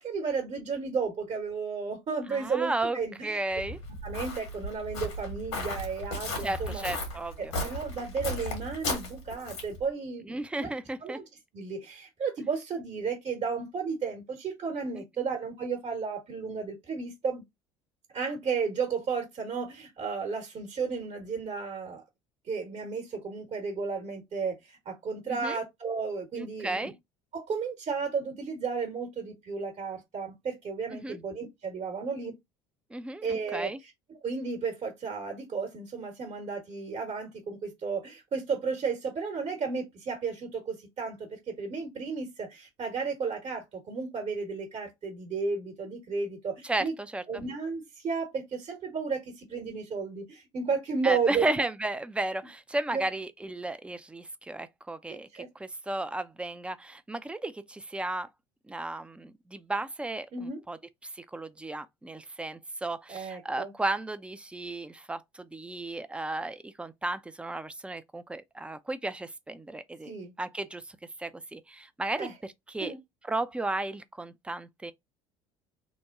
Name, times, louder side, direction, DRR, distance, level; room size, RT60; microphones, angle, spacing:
voice 1, 0.0-3.3 4.0-6.8 7.4-10.7 11.0-11.2 11.5-17.4 18.1-22.0 22.5-26.9 27.3-32.4 33.2-46.9 47.3-51.4 52.9-53.0 55.1-55.5 60.3-60.6 63.1-63.7 70.0-70.3 72.2-72.3 72.8-73.0, right 5 dB, 45° right, 1.1 m, -33 dB
voice 2, 2.3-3.8 6.4-7.5 10.3-11.2 15.0-15.3 25.3-25.6 26.4-26.9 30.9-31.2 32.9-33.8 46.7-47.2 51.0-55.3 55.6-58.3 58.7-60.8 61.1-70.1 70.4-70.8 71.2-72.9 73.3-74.9, right 2 dB, 10° right, 0.4 m, -34 dB
Walk footsteps, 3.6-9.8, left 2 dB, 80° left, 1.4 m, -35 dB
3.0 x 2.1 x 3.5 m
hypercardioid pair, 65°, 14 cm